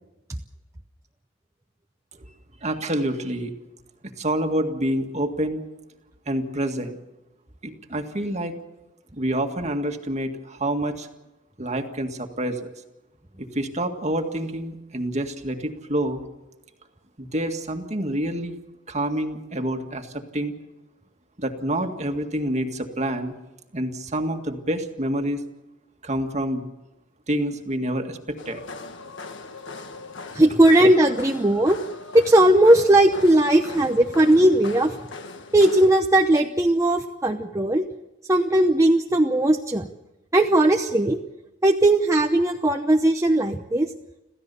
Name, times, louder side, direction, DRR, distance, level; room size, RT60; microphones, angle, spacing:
voice 1, 2.6-3.5 4.0-5.6 6.3-7.0 7.6-8.6 9.1-11.1 11.6-12.7 13.4-16.2 17.2-18.5 18.9-20.5 21.4-23.3 23.7-25.4 26.0-26.7 27.3-28.7, right 1 dB, 35° right, 5 dB, 1.9 m, -27 dB
sound 1, 28.4-35.9, left 3 dB, 65° left, 1.6 m, -39 dB
voice 2, 30.3-31.8 32.1-34.9 35.5-37.8 38.3-39.8 40.3-41.2 41.6-43.9, right 1 dB, 15° right, 2 dB, 0.8 m, -18 dB
27.0 x 15.5 x 6.9 m, 0.98 s
head